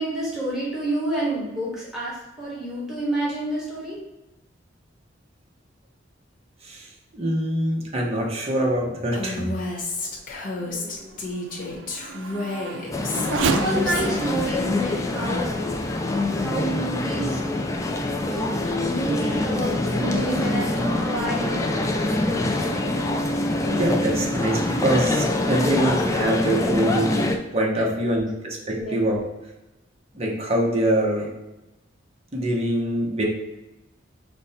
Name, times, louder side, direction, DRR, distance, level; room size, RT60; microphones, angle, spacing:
voice 1, 0.0-4.0 10.6-11.2 13.3-15.5 16.3-17.4 18.3-22.8 27.8-28.2 28.8-29.0, right 1 dB, ahead, -7 dB, 1.3 m, -29 dB
voice 2, 7.1-9.5 23.7-27.2 27.5-29.2 30.1-31.3 32.3-33.2, right 1 dB, 35° right, -1 dB, 0.8 m, -24 dB
Female speech woman speaking, 9.1-14.5, left 2 dB, 45° left, 0.9 m, -31 dB
Race car auto racing / Accelerating revving vroom, 9.1-17.1 17.7-17.8 18.4-23.2, right 5 dB, 75° right, 0.4 m, -34 dB
sound 1, 12.9-27.4, left 2 dB, 15° left, 0.3 m, -25 dB
5.3 x 2.2 x 4.1 m, 1.0 s
head